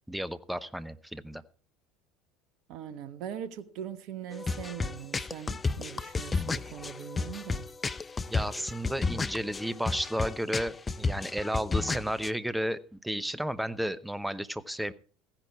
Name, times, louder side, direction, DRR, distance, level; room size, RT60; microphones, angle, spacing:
voice 1, 0.1-1.4 8.3-14.9, equal, 5° right, 0.9 m, -33 dB
voice 2, 2.7-7.7, right 9 dB, 55° right, 1.2 m, -41 dB
sound 1, 4.3-12.3, left 4 dB, 20° left, 0.6 m, -32 dB
15.5 x 10.5 x 4.7 m
hypercardioid pair, 70°, 0 cm